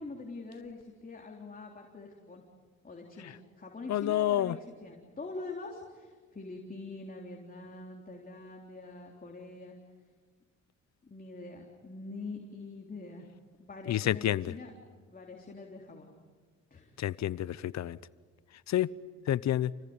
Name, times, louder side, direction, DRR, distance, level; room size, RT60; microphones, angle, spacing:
voice 1, 0.0-2.4 2.8-9.8 11.0-13.3 13.6-14.7 15.1-16.1 16.7-16.9, left 3 dB, 30° left, 0 dB, 3.7 m, -44 dB
voice 2, 3.9-4.6 13.9-14.4 17.0-18.0 18.7-18.9 19.3-19.7, left 12 dB, 65° left, 18 dB, 0.8 m, -28 dB
29.0 x 19.0 x 9.8 m, 1.5 s
cardioid pair, 90°, 30 cm